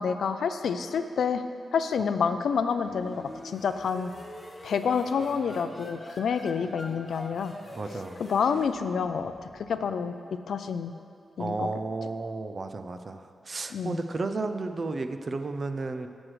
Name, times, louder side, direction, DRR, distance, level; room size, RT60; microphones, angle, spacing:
voice 1, 0.0-1.4 1.7-4.1 4.6-7.5 8.2-9.3 9.7-10.1 10.5-10.9 11.4-11.7 13.7-14.0, left 6 dB, 70° left, 9 dB, 0.4 m, -28 dB
sound 1, 2.2-9.8, left 1 dB, 20° left, 0.9 m, -45 dB
voice 2, 7.7-8.2 11.4-16.1, right 3 dB, 35° right, 8 dB, 0.4 m, -33 dB
16.5 x 6.2 x 3.2 m, 2.4 s
wide cardioid pair, 160°, 0 cm